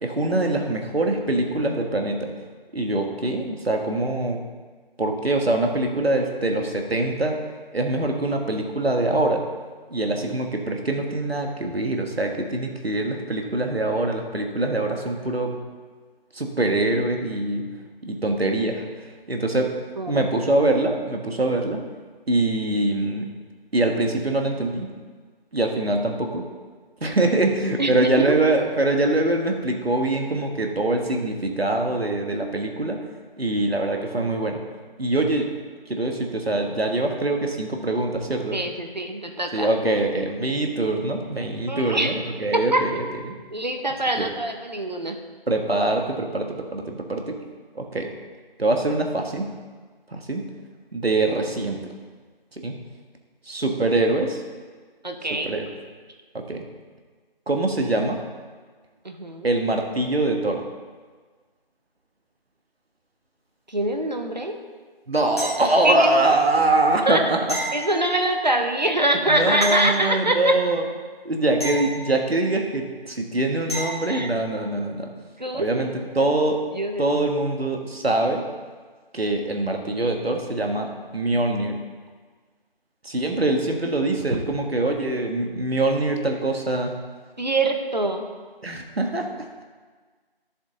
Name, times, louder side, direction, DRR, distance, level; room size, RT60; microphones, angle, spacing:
voice 1, 0.0-2.3 2.7-4.4 5.0-7.4 7.7-9.4 9.9-15.5 16.3-17.6 18.0-18.8 19.3-19.7 20.1-21.8 22.3-23.3 23.7-24.9 25.5-26.4 27.0-33.0 33.4-34.6 35.0-35.5 35.9-38.6 39.5-43.0 44.2-44.3 45.5-47.3 47.7-48.1 48.6-49.5 50.1-50.4 50.9-51.8 52.6-52.7 53.5-54.4 55.4-55.7 56.3-56.6 57.5-58.2 59.4-60.6 65.1-67.5 69.3-70.8 71.2-75.1 75.5-76.6 77.0-78.4 79.1-81.8 83.0-86.9 88.6-89.3, right 2 dB, 80° right, 3 dB, 1.7 m, -23 dB
voice 2, 20.0-20.3 27.8-28.4 38.5-39.7 41.7-42.1 42.5-42.8 43.5-45.2 55.0-55.6 59.0-59.5 63.7-64.6 65.8-66.2 67.0-67.2 67.7-70.6 74.1-74.3 75.4-76.3 76.7-77.0 87.4-88.3, right 1 dB, 45° right, 4 dB, 1.0 m, -24 dB
sound 1, 65.4-66.1 67.5-68.6 69.6-70.6 71.6-72.6 73.7-74.3 77.1-77.2, equal, 25° left, 2.0 m, -33 dB
11.0 x 7.3 x 4.0 m, 1.5 s
figure-of-eight pair, 180°, 30 cm